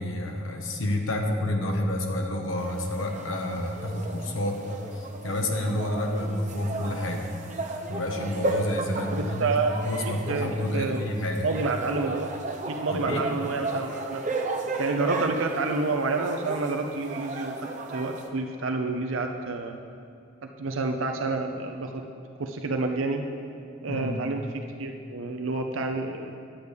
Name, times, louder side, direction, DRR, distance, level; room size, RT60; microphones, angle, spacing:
voice 1, 0.0-4.6 4.9-7.3 7.9-9.5 9.8-11.5 12.9-13.2 23.9-24.2, left 1 dB, 70° left, 2 dB, 1.2 m, -29 dB
sound 1, 2.6-18.3, right 2 dB, 35° right, 0.8 m, -34 dB
voice 2, 9.0-9.7 10.0-11.0 11.4-12.3 12.7-14.2 14.8-19.8 20.4-22.1 22.4-23.3 23.8-26.3, right 3 dB, 75° right, 3 dB, 0.6 m, -29 dB
10.0 x 8.1 x 5.1 m, 2.5 s
head